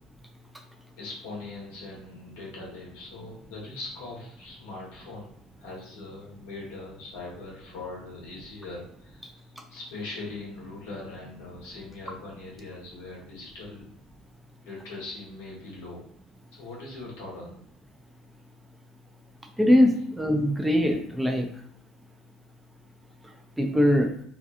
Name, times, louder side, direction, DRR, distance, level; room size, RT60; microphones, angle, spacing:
voice 1, 1.0-5.3 5.6-13.9 14.6-16.0 16.5-17.6, left 2 dB, 65° left, -4 dB, 1.1 m, -41 dB
voice 2, 19.6-21.5 23.6-24.1, left 1 dB, 5° right, 4 dB, 0.4 m, -21 dB
2.7 x 2.3 x 2.4 m, 0.66 s
figure-of-eight pair, 60°, 0 cm